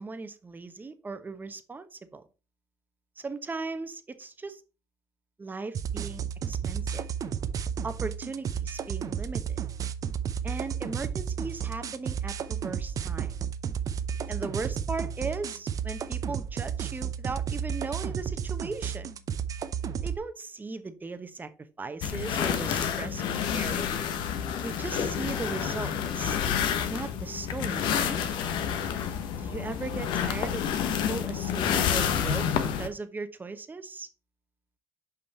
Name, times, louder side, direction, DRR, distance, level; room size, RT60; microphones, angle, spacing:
voice 1, 0.0-2.2 3.2-4.6 5.4-7.0 7.8-9.6 10.4-13.3 14.3-19.1 20.0-21.5 21.8-24.0 24.6-26.4 26.9-28.3 29.4-32.5 32.8-34.1, right 3 dB, 20° right, 1.0 m, -38 dB
sound 1, 5.7-20.2, right 8 dB, 40° right, 0.7 m, -32 dB
sound 2, 22.0-32.9, left 8 dB, 65° left, 1.1 m, -29 dB
5.6 x 5.4 x 4.2 m
supercardioid pair, 80°, 9 cm